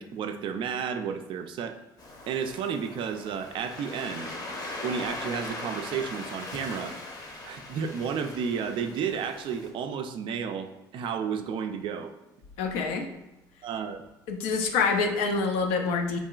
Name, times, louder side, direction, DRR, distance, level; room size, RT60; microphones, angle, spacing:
voice 1, 0.0-1.8 2.3-4.4 4.8-12.2 13.6-14.1, right 7 dB, 55° right, 8 dB, 0.4 m, -32 dB
Waves surf, 2.0-9.7, left 2 dB, 40° left, 0.8 m, -40 dB
voice 2, 12.6-13.1 14.3-16.2, left 4 dB, 70° left, 4 dB, 0.5 m, -26 dB
3.8 x 2.8 x 2.3 m, 0.99 s
hypercardioid pair, 65°, 10 cm